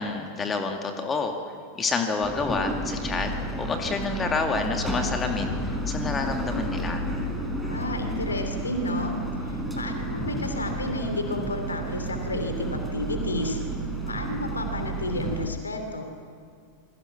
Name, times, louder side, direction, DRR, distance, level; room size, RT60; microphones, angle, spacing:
voice 1, 0.0-1.4 1.8-7.0, left 4 dB, 20° left, 4 dB, 2.2 m, -28 dB
sound 1, 2.2-15.5, right 1 dB, ahead, 4.2 m, -31 dB
voice 2, 7.6-9.2 9.5-13.6 14.1-16.0, left 1 dB, 75° left, 5 dB, 3.2 m, -31 dB
27.5 x 21.5 x 5.9 m, 2.2 s
figure-of-eight pair, 90°, 0 cm